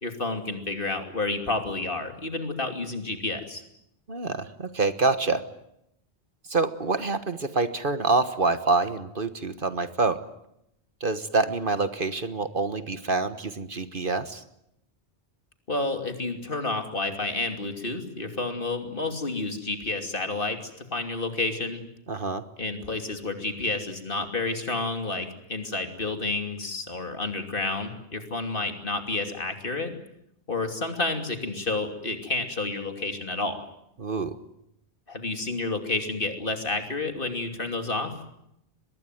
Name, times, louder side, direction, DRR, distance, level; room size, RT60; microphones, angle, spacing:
voice 1, 0.0-3.6 15.7-21.8 22.6-30.0 30.5-33.7 35.1-38.1, left 2 dB, 50° left, 5 dB, 3.1 m, -30 dB
voice 2, 4.1-5.5 6.5-10.2 11.0-14.4 22.1-22.4 34.0-34.4, right 3 dB, 50° right, 11 dB, 1.5 m, -26 dB
24.0 x 21.5 x 9.2 m, 0.79 s
omnidirectional pair, 1.1 m